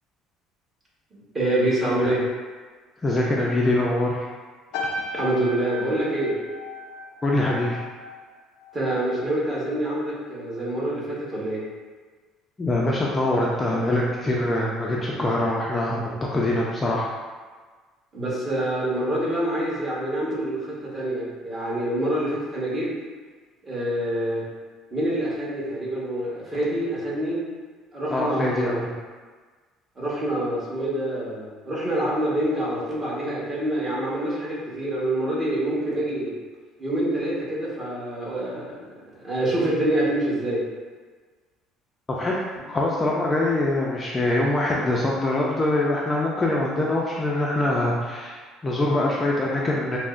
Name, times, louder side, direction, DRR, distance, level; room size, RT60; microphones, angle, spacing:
voice 1, 1.1-2.2 5.1-6.4 8.7-11.6 18.1-22.9 23.6-24.4 24.9-27.4 27.9-28.9 30.0-36.3 36.8-38.8 39.2-40.6, right 1 dB, 25° right, -7 dB, 1.2 m, -26 dB
voice 2, 3.0-4.3 7.2-7.8 12.6-17.1 28.1-28.9 42.1-42.4 42.7-50.0, left 1 dB, 20° left, -4 dB, 0.4 m, -24 dB
sound 1, 4.7-9.3 9.6-10.0, left 2 dB, 85° left, 0.4 m, -36 dB
5.8 x 2.0 x 2.5 m, 1.4 s
cardioid pair, 130°, 0 cm